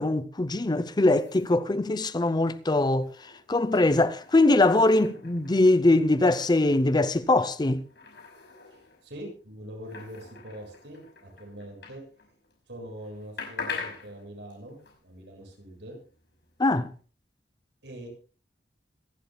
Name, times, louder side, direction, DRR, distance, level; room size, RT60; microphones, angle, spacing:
voice 1, 0.0-3.1 3.5-7.8 16.6-16.9, left 2 dB, 25° left, 0.6 m, -22 dB
sound 1, 0.9-12.6 12.8-17.0, left 5 dB, 75° left, 5.8 m, -45 dB
voice 2, 8.7-12.0 12.7-16.0 17.8-18.1, equal, 85° right, 7.0 m, -43 dB
25.5 x 11.5 x 2.3 m
head